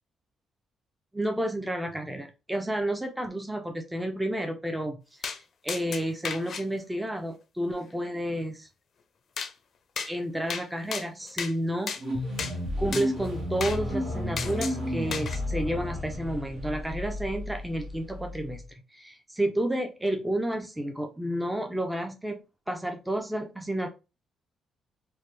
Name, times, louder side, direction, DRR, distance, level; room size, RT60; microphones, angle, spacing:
voice 1, 1.1-5.3 5.6-8.7 10.1-11.9 12.8-18.6 18.9-22.4 22.7-23.9, right 1 dB, 5° right, 5 dB, 0.4 m, -31 dB
sound 1, 5.2-5.4 5.7-6.6 9.4-9.5 10.0-10.1 10.5-10.7 10.9-11.5 11.9-12.0 12.4-12.5 12.9-13.1 13.6-13.8 14.4-14.8 15.1-15.4, left 6 dB, 55° left, 0.4 m, -33 dB
sound 2, 12.0-18.6, left 1 dB, 65° right, 1.0 m, -33 dB
3.1 x 2.1 x 3.0 m, 0.30 s
cardioid pair, 90°, 0 cm